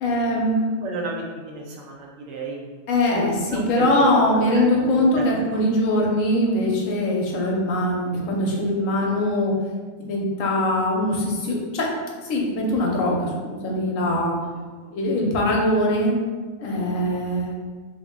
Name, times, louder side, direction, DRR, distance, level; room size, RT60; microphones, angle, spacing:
voice 1, 0.0-0.7 2.9-9.5 10.1-11.9 12.3-14.3 14.9-16.1 16.6-17.6, left 1 dB, 70° left, -2 dB, 1.0 m, -22 dB
voice 2, 0.8-2.6 3.1-3.8 4.4-4.7 4.9-5.2, right 3 dB, 70° right, -1 dB, 1.0 m, -32 dB
3.2 x 2.1 x 3.5 m, 1.4 s
omnidirectional pair, 1.5 m